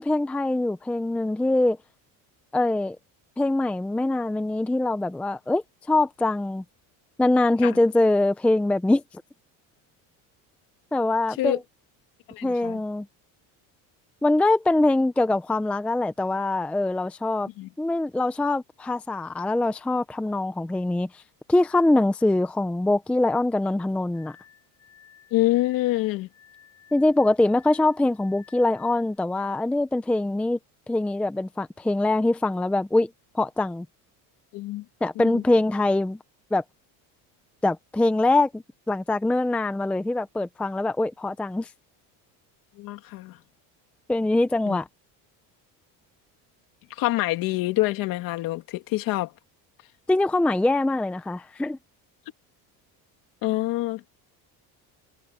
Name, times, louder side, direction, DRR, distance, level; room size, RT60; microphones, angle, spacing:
voice 1, 0.0-1.8 2.5-3.0 3.4-6.6 7.2-9.0 10.9-11.6 12.4-13.1 14.2-17.5 17.8-21.1 21.5-24.3 26.9-30.6 30.9-33.1 33.3-33.9 35.0-36.2 36.5-36.6 37.6-41.7 44.1-44.9 50.1-51.8, left 2 dB, 5° left, 0.5 m, -23 dB
voice 2, 12.3-12.8 17.6-17.7 25.3-26.3 34.5-34.8 35.2-35.4 42.8-43.4 44.7-44.8 46.9-49.3 53.4-54.0, left 17 dB, 60° left, 2.5 m, -26 dB
Glass, 24.1-29.2, left 9 dB, 40° left, 6.9 m, -55 dB
cardioid pair, 165°, 39 cm